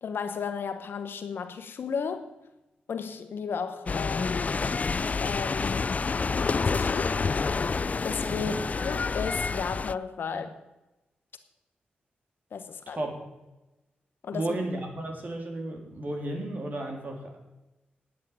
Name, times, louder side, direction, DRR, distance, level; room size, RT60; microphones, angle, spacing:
voice 1, 0.0-2.3 2.9-6.0 6.7-7.2 8.0-8.5 8.8-10.6 12.5-13.1 14.2-14.6, left 6 dB, 75° left, 1.1 m, -34 dB
sound 1, 3.9-9.9, left 4 dB, 40° left, 0.3 m, -28 dB
voice 2, 8.3-8.6 12.9-13.2 14.3-17.4, right 1 dB, 50° right, 3.2 m, -33 dB
8.9 x 8.4 x 9.4 m
cardioid pair, 55°, 4 cm